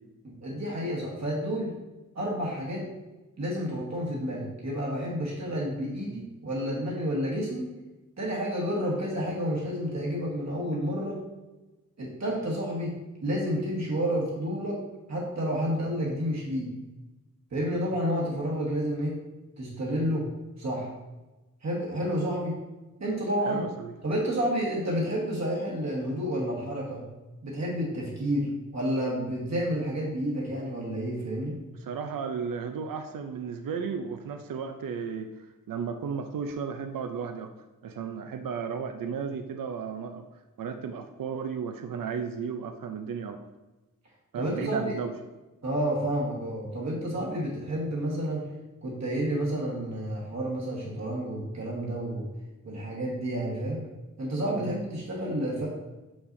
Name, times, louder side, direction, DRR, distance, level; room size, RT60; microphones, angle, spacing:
voice 1, 0.2-1.7 2.1-2.9 3.4-7.7 8.2-11.2 12.0-14.8 15.1-16.7 17.5-19.2 19.6-20.2 20.6-20.9 21.6-22.6 23.0-23.6 24.0-27.0 27.4-31.6 44.3-45.0 45.6-48.4 48.8-52.3 52.6-53.9 54.2-55.7, equal, 55° right, -3 dB, 1.5 m, -30 dB
voice 2, 23.5-23.9 31.8-37.5 37.8-40.2 40.6-43.5 44.3-45.1 54.5-54.8, right 6 dB, 90° right, 6 dB, 0.5 m, -34 dB
6.4 x 5.9 x 2.6 m, 1.1 s
wide cardioid pair, 115°, 32 cm